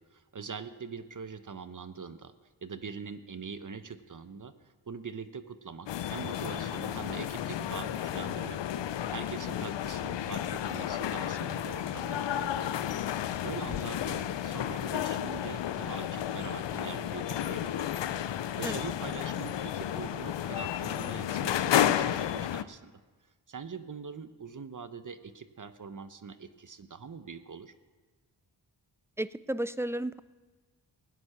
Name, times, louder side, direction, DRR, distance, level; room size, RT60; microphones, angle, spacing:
voice 1, 0.0-2.3 2.6-8.6 9.1-12.9 13.2-17.9 18.3-22.9 23.5-27.7, right 5 dB, 45° right, 11 dB, 0.9 m, -43 dB
sound 1, 5.9-22.6, left 11 dB, 70° left, 0.6 m, -32 dB
voice 2, 29.2-30.2, right 1 dB, 5° right, 16 dB, 0.4 m, -33 dB
16.0 x 9.5 x 5.9 m, 1.3 s
cardioid pair, 45°, 45 cm